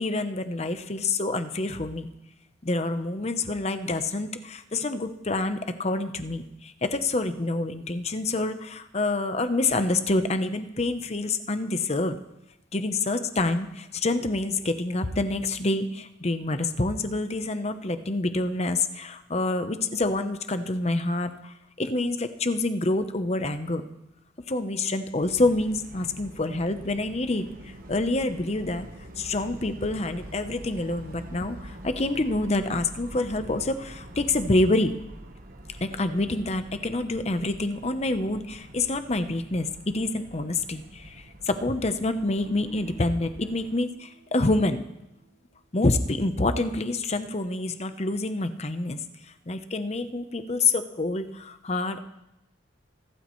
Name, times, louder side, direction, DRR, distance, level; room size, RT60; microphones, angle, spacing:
voice 1, 0.0-2.1 2.6-12.2 12.7-23.8 24.5-28.9 29.2-34.9 35.8-44.8 45.7-49.0 49.5-52.0, left 2 dB, 35° left, 9 dB, 0.8 m, -27 dB
Subway Plarform Noise with a Number of Passing Trains, 25.2-43.8, right 1 dB, 50° right, 1.2 m, -45 dB
Guitar, 42.4-46.4, equal, 75° left, 4.8 m, -53 dB
26.5 x 12.5 x 3.2 m, 0.91 s
head